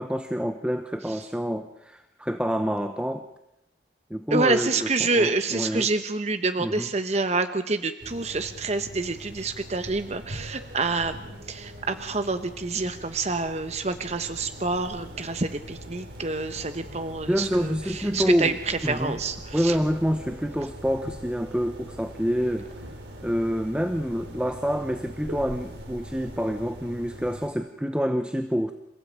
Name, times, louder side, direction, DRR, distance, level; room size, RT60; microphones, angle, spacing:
voice 1, 0.0-3.2 4.1-5.9 6.6-6.9 17.3-18.5 18.8-19.2 19.5-22.7 23.2-28.7, equal, 5° right, 7 dB, 1.0 m, -27 dB
voice 2, 4.3-19.8, right 3 dB, 35° right, 9 dB, 1.0 m, -27 dB
sound 1, 8.0-27.5, equal, 75° right, 3.9 m, -42 dB
27.5 x 16.0 x 8.7 m, 0.89 s
head